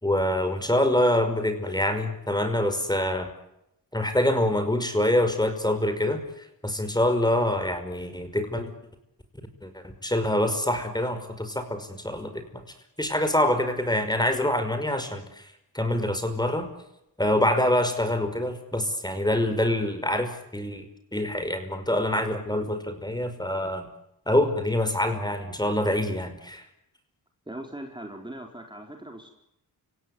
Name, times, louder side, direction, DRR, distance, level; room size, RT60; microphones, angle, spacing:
voice 1, 0.0-3.3 3.9-8.7 9.6-12.6 13.0-15.5 15.7-16.7 17.2-23.9 24.3-26.6, left 1 dB, 10° left, 8 dB, 5.5 m, -25 dB
voice 2, 27.5-29.3, right 1 dB, 10° right, 2 dB, 4.3 m, -40 dB
29.5 x 17.5 x 9.7 m, 0.86 s
cardioid pair, 65°, 42 cm